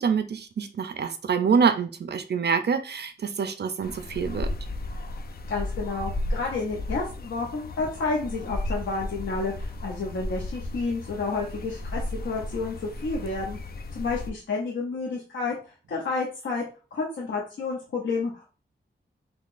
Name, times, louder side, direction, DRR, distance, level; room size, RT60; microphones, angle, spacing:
voice 1, 0.0-4.5, right 6 dB, 60° right, 8 dB, 0.4 m, -26 dB
sound 1, 3.8-14.3, left 2 dB, 55° left, 0.4 m, -34 dB
voice 2, 5.5-13.6 13.9-15.6 15.9-16.6 16.9-18.4, left 3 dB, 85° left, -2 dB, 0.7 m, -30 dB
3.7 x 3.0 x 2.4 m, 0.35 s
wide cardioid pair, 105°, 19 cm